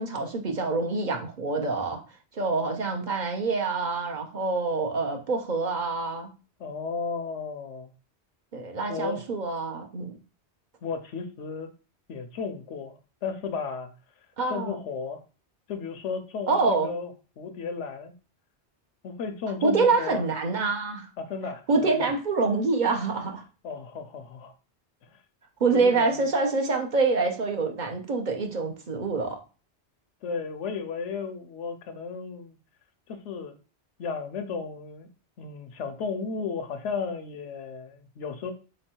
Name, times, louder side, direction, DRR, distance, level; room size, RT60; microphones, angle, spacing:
voice 1, 0.0-2.0 2.3-6.3 8.5-10.1 14.4-14.8 16.5-16.9 19.6-21.1 21.7-23.4 25.6-29.4, right 3 dB, 50° right, 0.7 m, -26 dB
voice 2, 6.6-7.9 8.9-9.2 10.8-11.7 12.1-13.9 14.5-15.2 15.7-18.1 19.0-20.3 21.2-22.1 23.6-24.5 25.7-26.2 30.2-32.6 33.1-33.6 34.0-35.1 35.4-38.5, left 5 dB, 90° left, 1.0 m, -34 dB
3.4 x 3.0 x 4.4 m
omnidirectional pair, 1.2 m